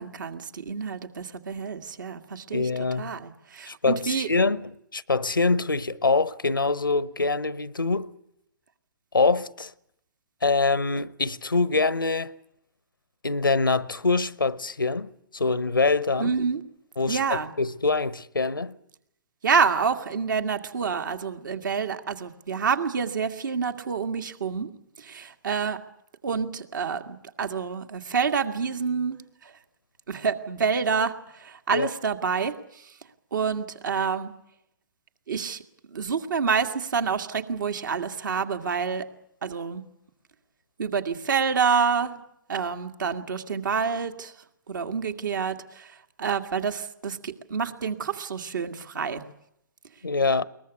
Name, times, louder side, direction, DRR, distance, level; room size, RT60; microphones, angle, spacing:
voice 1, 0.0-2.7 3.0-4.4 16.2-16.6 17.1-17.5 19.4-24.7 25.0-25.8 26.2-29.2 29.4-29.5 30.1-32.9 33.3-34.3 35.3-35.6 35.9-39.1 39.4-39.8 40.8-42.2 42.5-44.3 44.7-49.2, right 6 dB, 65° right, 2.1 m, -28 dB
voice 2, 2.5-3.1 3.7-8.1 9.1-9.7 10.4-12.3 13.2-16.3 17.0-18.7 31.7-31.9 50.0-50.5, left 3 dB, 90° left, 0.9 m, -24 dB
22.0 x 20.0 x 8.2 m
figure-of-eight pair, 125°, 11 cm